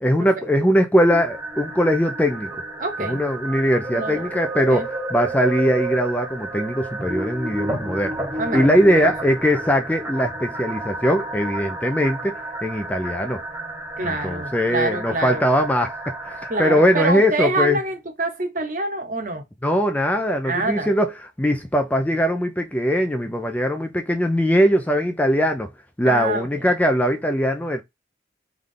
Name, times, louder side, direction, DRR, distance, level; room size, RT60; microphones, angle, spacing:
voice 1, 0.0-2.5 3.0-8.1 8.5-12.3 12.6-13.4 14.0-17.8 19.6-25.7 26.0-27.8, equal, 10° left, 0.4 m, -21 dB
sound 1, 1.1-17.1, right 2 dB, 15° right, 0.9 m, -31 dB
voice 2, 2.8-3.2 3.9-4.3 4.7-4.9 8.4-9.1 14.0-15.4 16.5-19.4 20.4-20.9 26.0-26.7, right 2 dB, 45° right, 1.0 m, -26 dB
3.6 x 3.2 x 3.8 m
head